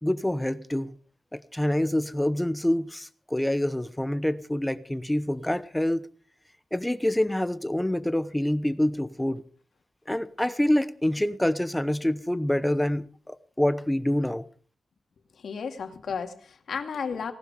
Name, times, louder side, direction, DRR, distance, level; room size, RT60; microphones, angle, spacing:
voice 1, 0.0-0.9 1.3-6.1 6.7-9.4 10.1-14.5, left 1 dB, 5° left, 0.8 m, -26 dB
voice 2, 15.4-17.3, left 6 dB, 75° left, 2.3 m, -33 dB
18.5 x 12.5 x 5.1 m
wide cardioid pair, 120°, 0 cm